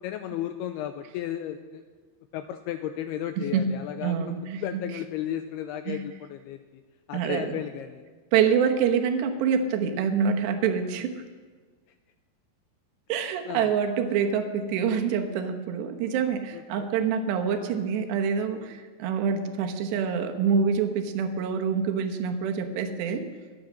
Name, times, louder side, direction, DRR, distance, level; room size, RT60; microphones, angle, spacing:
voice 1, 0.0-1.8 2.3-6.8 7.1-8.0 13.1-13.7 16.5-16.9, left 11 dB, 85° left, 8 dB, 2.3 m, -34 dB
voice 2, 4.0-4.8 5.9-6.0 7.1-7.6 8.3-11.1 13.1-23.3, right 6 dB, 75° right, 5 dB, 3.2 m, -26 dB
23.5 x 8.6 x 6.4 m, 1.4 s
omnidirectional pair, 5.2 m